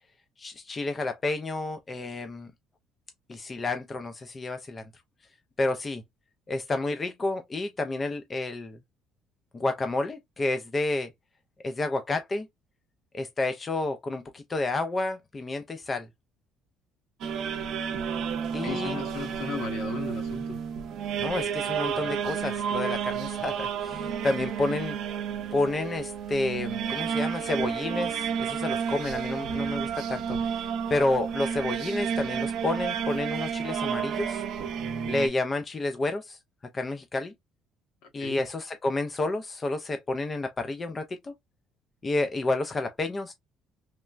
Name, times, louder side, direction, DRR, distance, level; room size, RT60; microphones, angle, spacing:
voice 1, 0.4-2.5 3.3-4.8 5.6-6.0 6.5-8.8 9.5-11.1 11.6-12.5 13.1-16.1 18.5-19.0 21.2-25.0 25.5-34.4 35.1-36.4 36.7-37.3 38.1-41.3 42.0-43.3, left 2 dB, 20° left, 0.3 m, -30 dB
sound 1, 17.2-35.3, right 7 dB, 50° right, 0.5 m, -31 dB
voice 2, 18.6-20.6 38.0-38.4, left 5 dB, 65° left, 1.0 m, -36 dB
3.1 x 2.1 x 2.3 m
cardioid pair, 165°, 0 cm